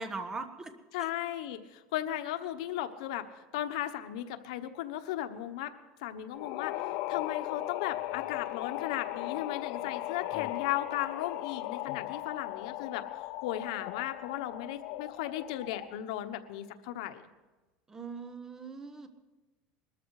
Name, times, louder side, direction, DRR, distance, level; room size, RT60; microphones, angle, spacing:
voice 1, 0.0-0.7 17.9-19.1, right 3 dB, 15° right, 8 dB, 1.3 m, -40 dB
voice 2, 0.9-3.3 3.5-5.7 6.0-17.2, left 12 dB, 85° left, 9 dB, 1.1 m, -36 dB
sound 1, 6.3-16.1, left 17 dB, 60° left, 0.6 m, -37 dB
21.0 x 13.5 x 4.9 m, 1.2 s
cardioid pair, 155°, 3 cm